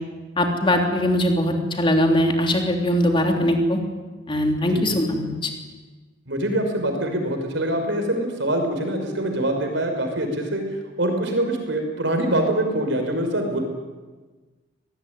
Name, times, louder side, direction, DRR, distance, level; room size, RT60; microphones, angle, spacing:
voice 1, 0.4-3.8 4.3-5.5, left 1 dB, 25° left, 2 dB, 3.3 m, -21 dB
voice 2, 6.3-10.6 11.0-13.6, right 1 dB, 65° right, 4 dB, 5.6 m, -24 dB
24.0 x 19.5 x 9.7 m, 1.3 s
head